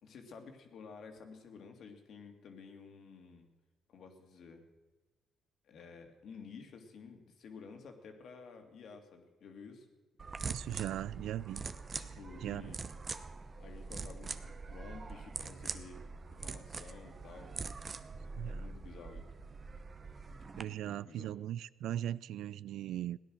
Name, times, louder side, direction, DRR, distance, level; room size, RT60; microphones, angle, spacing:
voice 1, 0.0-3.5 3.9-4.7 5.6-9.9 11.9-12.8 13.6-17.6 18.4-19.3 20.5-21.4, left 5 dB, 70° left, 5 dB, 2.3 m, -52 dB
sound 1, 10.2-20.6, right 4 dB, 35° right, 0.8 m, -44 dB
voice 2, 10.4-11.7 12.4-12.8 18.4-18.7 20.6-23.2, right 12 dB, 80° right, 20 dB, 0.4 m, -39 dB
16.5 x 10.5 x 6.4 m, 1.2 s
cardioid pair, 90°, 0 cm